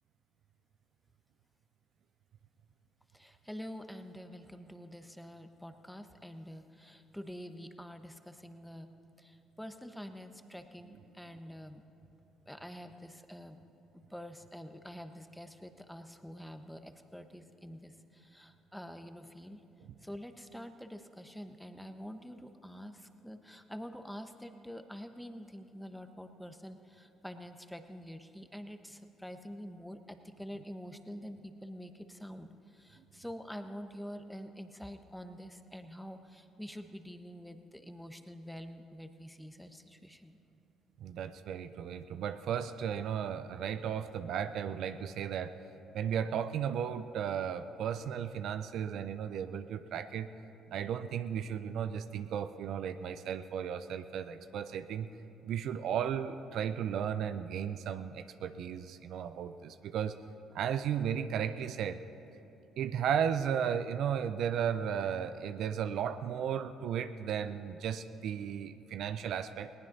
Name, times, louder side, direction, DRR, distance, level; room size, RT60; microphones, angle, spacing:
voice 1, 3.1-8.9 9.2-11.8 12.5-13.6 14.1-19.6 20.0-40.4, equal, 5° left, 7 dB, 1.1 m, -47 dB
voice 2, 41.0-45.6 45.9-50.3 50.7-55.1 55.4-60.2 60.5-62.0 62.8-69.7, right 8 dB, 65° right, 11 dB, 0.5 m, -35 dB
20.5 x 18.5 x 2.7 m, 2.8 s
hypercardioid pair, 50°, 0 cm